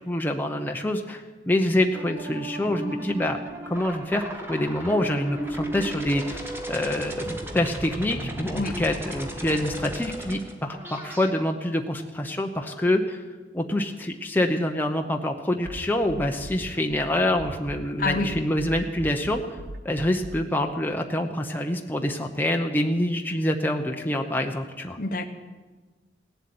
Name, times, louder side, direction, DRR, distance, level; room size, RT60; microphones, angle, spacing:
voice 1, 0.1-3.4 3.7-4.2 4.5-6.4 6.7-13.2 13.5-19.4 19.8-25.0, left 1 dB, 10° left, 3 dB, 0.9 m, -26 dB
sound 1, 1.9-11.3, right 1 dB, 15° right, 1.6 m, -34 dB
sound 2, 15.6-20.4, right 1 dB, 65° right, 0.7 m, -40 dB
voice 2, 18.0-18.3 25.0-25.3, left 2 dB, 50° left, 8 dB, 1.0 m, -27 dB
17.0 x 8.1 x 9.6 m, 1.3 s
head